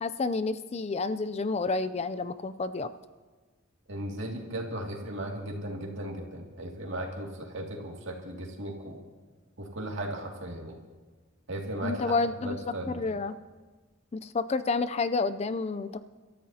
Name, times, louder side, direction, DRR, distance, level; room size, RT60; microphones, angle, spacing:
voice 1, 0.0-2.9 11.8-12.6 12.9-13.4 14.1-16.1, left 3 dB, 30° left, 13 dB, 0.4 m, -29 dB
voice 2, 3.9-9.0 9.6-10.8 11.5-13.0, right 1 dB, 65° right, 0 dB, 2.2 m, -36 dB
29.5 x 13.5 x 2.8 m, 1.3 s
head